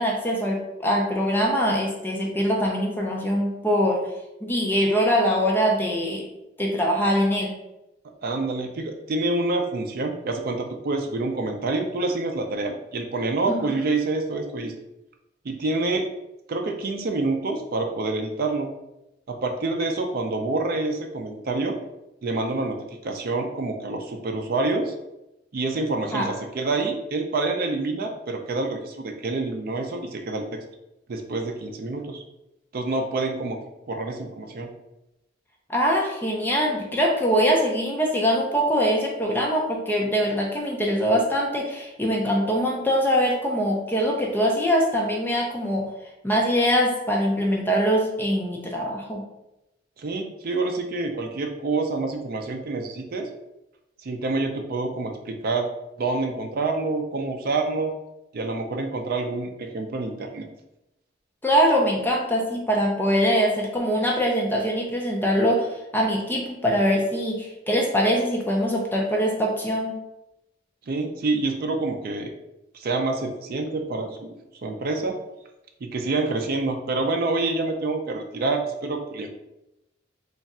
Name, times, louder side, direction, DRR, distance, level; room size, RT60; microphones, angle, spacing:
voice 1, 0.0-4.1 4.4-6.3 6.6-7.5 26.1-26.3 35.7-45.9 46.2-49.2 61.4-70.0, equal, 10° left, -1 dB, 0.5 m, -23 dB
voice 2, 8.2-14.7 15.4-16.1 16.5-18.7 19.3-21.8 22.2-22.8 23.0-24.9 25.5-30.6 31.1-32.2 32.7-33.6 33.9-34.7 50.0-53.3 54.0-55.7 56.0-57.9 58.3-60.4 70.9-72.3 72.7-74.3 74.6-75.2 75.8-79.3, right 3 dB, 50° right, 3 dB, 0.4 m, -27 dB
3.4 x 2.4 x 4.1 m, 0.91 s
head